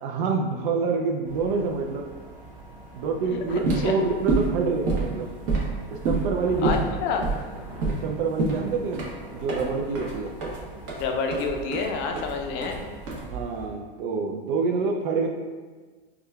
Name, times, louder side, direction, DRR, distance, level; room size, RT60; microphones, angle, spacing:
voice 1, 0.0-2.1 2.9-5.3 5.9-6.8 8.0-10.3 13.2-15.3, right 4 dB, 65° right, 1 dB, 0.4 m, -27 dB
sound 1, 1.2-13.3, right 2 dB, 25° right, 1.4 m, -46 dB
Thunder / Rain, 2.8-13.7, left 1 dB, 80° right, 1.1 m, -47 dB
sound 2, 3.5-13.7, right 3 dB, 45° right, 1.0 m, -29 dB
voice 2, 6.6-7.3 11.0-12.8, left 5 dB, 40° left, 3 dB, 0.5 m, -28 dB
4.8 x 2.2 x 2.3 m, 1.4 s
supercardioid pair, 125°, 29 cm